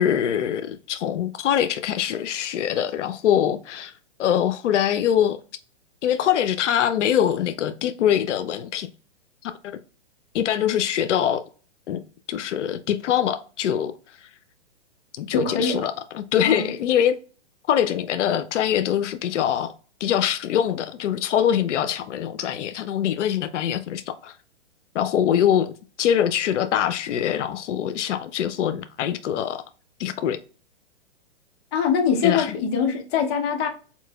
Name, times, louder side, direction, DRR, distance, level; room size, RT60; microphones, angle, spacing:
voice 1, 0.0-3.9 4.2-5.4 6.0-8.9 9.4-9.5 10.3-11.4 11.9-12.0 12.3-13.9 15.2-17.2 17.7-19.7 20.0-24.3 24.9-25.7 26.0-29.6 30.0-30.4 32.2-32.5, left 10 dB, 85° left, 0.5 m, -23 dB
voice 2, 15.3-15.9 16.4-16.7 31.7-33.7, left 6 dB, 25° left, 0.5 m, -23 dB
4.2 x 3.0 x 2.2 m
hypercardioid pair, 145°, 35 cm